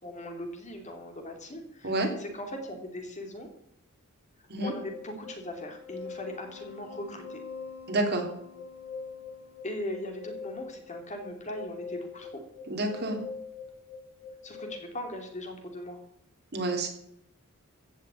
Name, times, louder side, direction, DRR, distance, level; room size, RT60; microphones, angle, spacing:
voice 1, 0.0-3.5 4.6-7.4 9.6-12.4 14.4-16.0, left 1 dB, 35° left, 4 dB, 2.8 m, -39 dB
sound 1, 4.6-14.8, left 5 dB, 85° left, 3.1 m, -43 dB
voice 2, 7.9-8.3 12.7-13.2 16.5-16.9, right 2 dB, 50° right, 2 dB, 3.0 m, -28 dB
15.5 x 6.5 x 8.6 m, 0.73 s
head